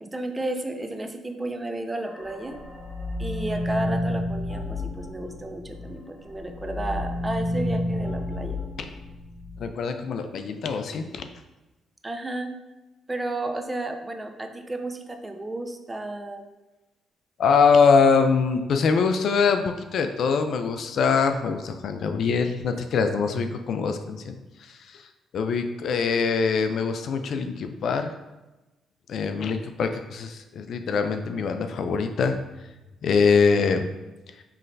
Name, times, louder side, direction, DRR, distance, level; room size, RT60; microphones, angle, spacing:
voice 1, 0.0-2.6 3.2-8.6 12.0-12.5 13.1-16.5, right 2 dB, 15° right, 5 dB, 0.5 m, -32 dB
sound 1, 2.0-5.9 6.3-9.7, left 1 dB, 30° left, 1.3 m, -31 dB
voice 2, 9.6-11.2 17.4-24.3 25.3-28.1 29.1-32.4 33.0-33.9, left 5 dB, 65° left, 7 dB, 0.4 m, -23 dB
5.7 x 3.2 x 2.6 m, 1.1 s
cardioid pair, 90°, 0 cm